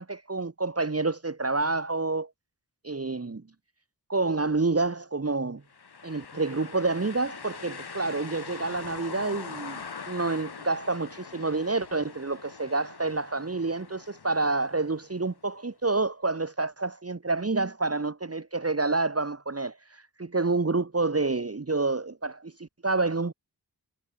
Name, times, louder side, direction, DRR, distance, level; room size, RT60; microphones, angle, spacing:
voice 1, 0.0-2.3 2.8-3.4 4.1-5.6 6.0-9.8 10.1-23.3, right 3 dB, 35° right, 1.4 m, -28 dB
sound 1, 5.7-15.5, left 5 dB, 70° left, 1.5 m, -43 dB
wide cardioid pair, 60°, 40 cm